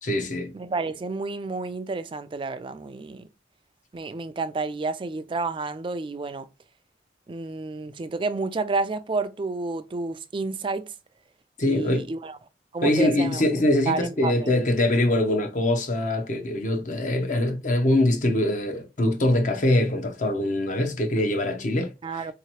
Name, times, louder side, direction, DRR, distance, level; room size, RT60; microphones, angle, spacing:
voice 1, 0.0-0.5 11.6-12.0 12.8-22.2, left 1 dB, 45° left, 0.7 m, -23 dB
voice 2, 0.5-3.3 3.9-6.5 7.3-10.9 11.6-12.4 12.7-13.4 13.9-14.5 22.0-22.3, right 3 dB, 30° right, 0.3 m, -30 dB
4.0 x 2.9 x 2.9 m
head